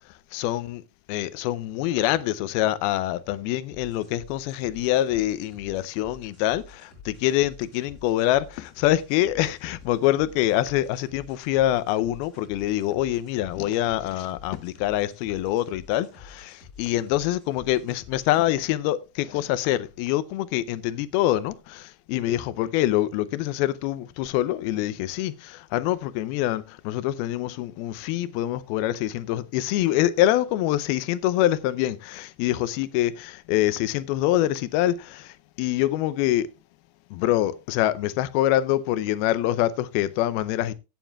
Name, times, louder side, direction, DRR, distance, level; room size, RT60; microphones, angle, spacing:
voice 1, 0.3-0.8 1.1-36.5 37.1-40.7, left 14 dB, 80° left, 2.6 m, -25 dB
sound 1, 3.7-18.4, left 4 dB, 20° left, 5.8 m, -49 dB
16.5 x 9.2 x 2.3 m
omnidirectional pair, 4.4 m